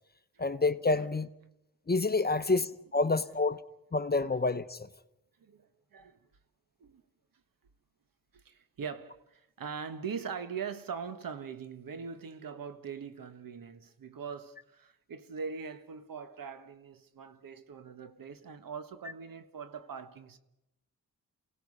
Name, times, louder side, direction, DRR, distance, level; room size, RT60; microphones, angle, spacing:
voice 1, 0.4-1.3 1.9-3.6 3.9-4.8, left 3 dB, 25° left, 0.9 m, -28 dB
voice 2, 2.8-3.6 5.4-6.2 6.8-7.0 8.3-20.4, right 6 dB, 60° right, 1.4 m, -42 dB
28.0 x 17.0 x 5.5 m
cardioid pair, 65°, 37 cm